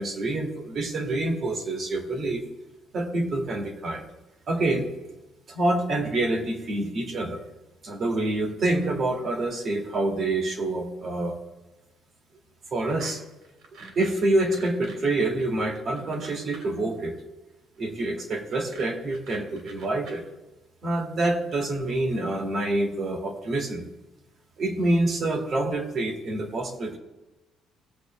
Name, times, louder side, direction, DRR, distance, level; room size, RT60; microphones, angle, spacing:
voice 1, 0.0-2.4 2.9-4.0 4.5-4.9 5.5-7.4 7.8-11.3 12.7-13.2 13.9-17.2 17.8-20.2 20.8-23.9 24.6-27.0, right 2 dB, 35° right, 2 dB, 1.6 m, -27 dB
sound 1, 12.9-13.1 13.4-16.9 18.3-20.2, right 3 dB, 70° right, 3.0 m, -45 dB
17.0 x 7.8 x 3.1 m, 1.1 s
cardioid pair, 170°, 0 cm